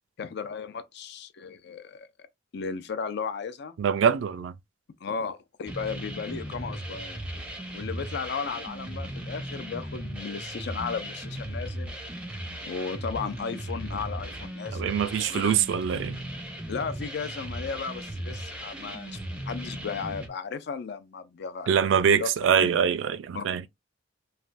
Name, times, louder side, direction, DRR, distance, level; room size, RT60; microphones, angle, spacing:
voice 1, 0.2-2.1 2.5-3.8 5.0-7.2 7.7-11.9 12.6-15.5 16.7-19.2 19.5-22.3 22.6-22.8 23.3-23.4, left 5 dB, 60° left, 0.4 m, -35 dB
voice 2, 3.8-4.5 14.7-16.2 21.7-23.6, right 7 dB, 70° right, 0.3 m, -24 dB
sound 1, 5.7-20.3, right 1 dB, 5° right, 0.5 m, -37 dB
3.3 x 2.1 x 2.5 m
head